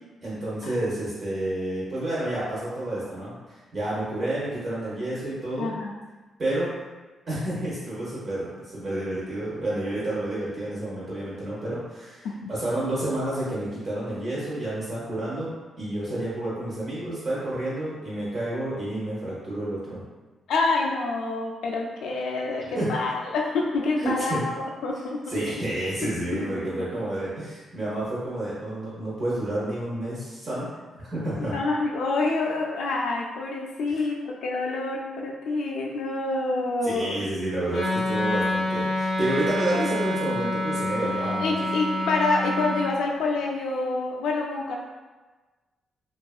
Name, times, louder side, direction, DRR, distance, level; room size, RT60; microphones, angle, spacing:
voice 1, 0.2-5.7 6.4-6.7 7.3-20.0 22.6-22.9 24.0-24.4 25.3-30.7 31.0-31.5 33.9-34.0 36.8-41.5, right 1 dB, 40° right, -9 dB, 0.7 m, -30 dB
voice 2, 5.6-5.9 12.2-12.5 20.5-25.4 26.3-26.9 31.4-37.2 40.9-41.0 41.4-44.8, left 3 dB, 80° left, -1 dB, 0.3 m, -27 dB
Wind instrument woodwind instrument, 37.7-42.9, left 1 dB, 40° left, 0.6 m, -27 dB
2.7 x 2.3 x 2.3 m, 1.2 s
wide cardioid pair, 160°, 0 cm